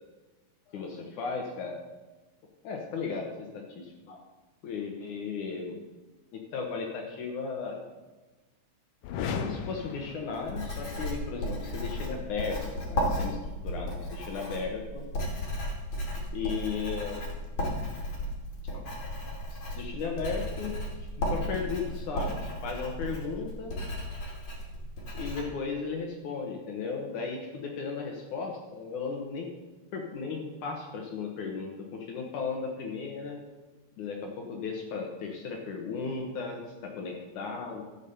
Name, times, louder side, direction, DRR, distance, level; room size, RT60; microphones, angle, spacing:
voice 1, 0.7-1.8 2.6-3.3 3.7-4.2 4.6-5.8 6.3-7.8 9.2-12.6 12.9-13.4 13.6-15.1 16.3-17.2 18.7-18.8 19.5-20.7 21.3-23.8 25.1-29.5 29.9-33.4 34.0-37.8, left 5 dB, 65° left, 1 dB, 2.6 m, -35 dB
sound 1, 9.0-11.0, left 6 dB, 90° left, 2.6 m, -36 dB
Writing, 10.3-25.4, equal, 40° left, 3.3 m, -34 dB
13.0 x 7.2 x 6.9 m, 1.2 s
omnidirectional pair, 3.9 m